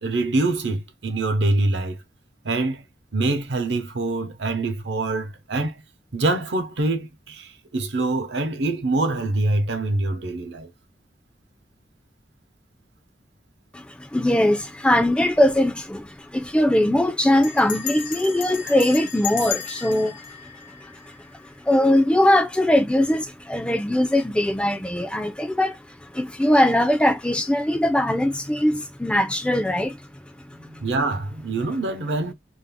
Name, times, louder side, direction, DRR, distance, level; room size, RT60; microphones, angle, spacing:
voice 1, 0.0-2.0 2.4-2.8 3.1-5.8 6.1-10.7 30.5-32.3, right 2 dB, 85° right, 0.8 m, -25 dB
voice 2, 13.7-20.2 21.6-30.0, left 1 dB, 5° left, 0.4 m, -21 dB
Bell, 15.3-15.7 15.9-16.0 16.3-16.6 17.4-21.5, left 10 dB, 50° left, 0.7 m, -34 dB
2.6 x 2.3 x 3.4 m
head